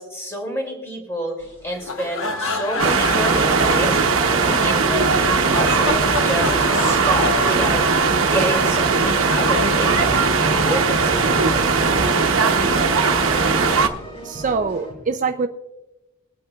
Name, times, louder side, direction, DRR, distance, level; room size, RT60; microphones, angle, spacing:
voice 1, 0.0-4.0 4.6-11.5, equal, 15° left, 0 dB, 2.5 m, -29 dB
sound 1, 1.4-14.9, equal, 30° left, 3.4 m, -36 dB
sound 2, 1.7-10.7, left 3 dB, 80° left, 1.0 m, -30 dB
sound 3, 2.8-13.9, right 4 dB, 85° right, 1.0 m, -18 dB
voice 2, 14.2-15.5, right 5 dB, 40° right, 6 dB, 0.5 m, -24 dB
22.5 x 8.6 x 2.4 m, 1.1 s
head